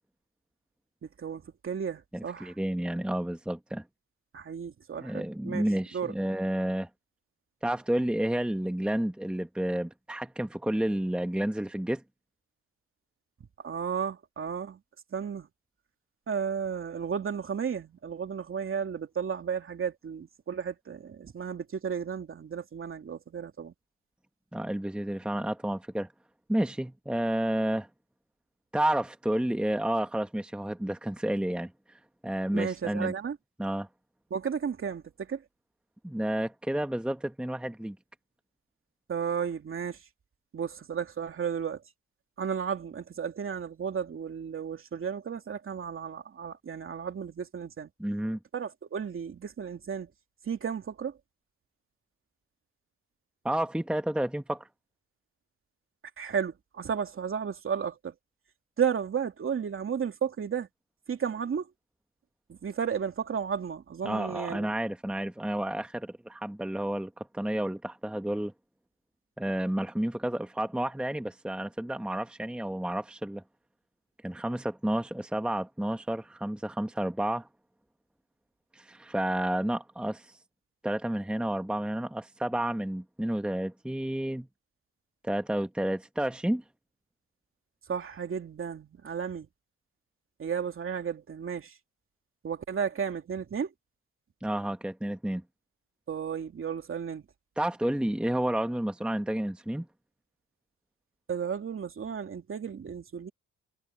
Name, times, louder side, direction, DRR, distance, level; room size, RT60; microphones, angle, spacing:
voice 1, 1.0-2.5 4.3-5.7 5.9-6.1 13.6-14.8 15.1-15.5 16.3-23.7 32.5-33.4 34.3-35.4 39.1-40.0 40.5-41.8 42.4-47.9 48.5-50.1 50.4-51.2 56.2-58.1 58.8-60.7 61.1-61.7 62.5-64.7 87.9-89.5 90.4-91.8 92.4-93.7 96.1-97.2 101.3-103.3, right 7 dB, 45° right, 2.7 m, -33 dB
voice 2, 2.1-3.8 5.0-6.9 7.6-12.0 24.5-26.1 26.5-27.9 28.7-31.7 32.2-33.1 33.6-33.9 36.0-38.0 48.0-48.4 53.4-54.7 64.0-68.5 69.4-73.4 74.2-77.5 78.7-80.4 80.8-84.5 85.2-86.6 94.4-95.4 97.6-99.9, right 1 dB, 5° right, 1.1 m, -30 dB
cardioid pair, 90°, 30 cm